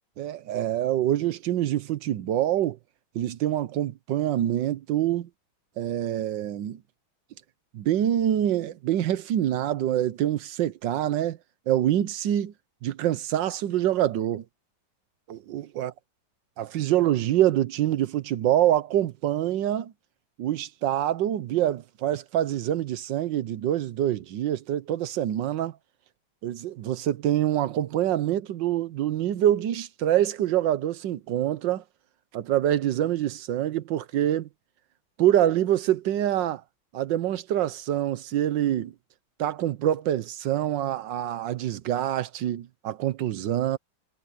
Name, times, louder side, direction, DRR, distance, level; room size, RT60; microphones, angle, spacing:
voice 1, 0.2-2.8 3.1-5.3 5.8-6.8 7.7-11.4 11.7-12.5 12.8-14.4 15.3-15.9 16.6-19.9 20.4-25.7 26.4-31.8 32.3-34.5 35.2-36.6 36.9-38.9 39.4-43.8, right 12 dB, 70° right, 1.4 m, -25 dB
omnidirectional pair, 2.2 m